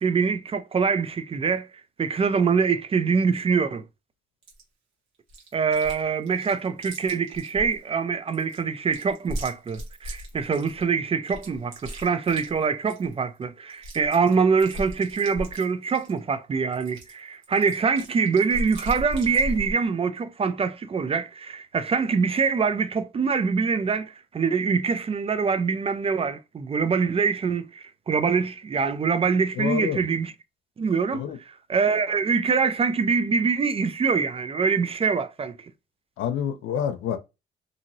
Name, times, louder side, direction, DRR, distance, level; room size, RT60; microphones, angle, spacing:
voice 1, 0.0-1.7 2.0-3.8 5.5-30.3 30.8-31.2 31.7-35.6, right 5 dB, 30° right, 0.4 m, -24 dB
Chewing mastication, 4.4-4.6 5.3-6.0 6.3-7.8 8.3-10.8 11.3-13.1 13.4-13.5 13.7-16.2 16.7-19.7, equal, 90° right, 1.2 m, -36 dB
voice 2, 29.5-30.0 31.1-31.4 36.2-37.2, left 8 dB, 85° left, 0.6 m, -28 dB
2.9 x 2.6 x 2.6 m
cardioid pair, 90°, 20 cm